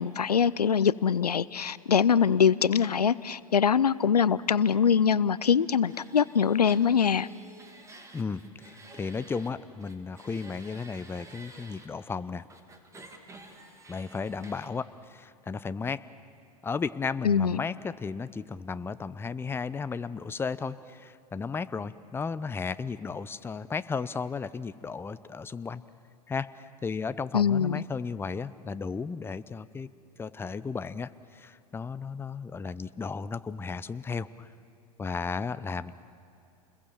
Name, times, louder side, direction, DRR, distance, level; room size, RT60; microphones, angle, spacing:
voice 1, 0.0-7.3 17.2-17.6 27.3-27.8, left 7 dB, 90° left, 19 dB, 0.6 m, -23 dB
sound 1, 5.9-9.5 9.8-11.9 12.5-14.7, right 2 dB, 15° right, 2.6 m, -51 dB
voice 2, 8.1-12.4 13.9-16.0 16.6-25.8 26.3-29.9 30.2-34.5 35.0-35.9, left 5 dB, 10° left, 14 dB, 0.7 m, -34 dB
29.0 x 21.5 x 7.2 m, 2.7 s
hypercardioid pair, 95°, 20 cm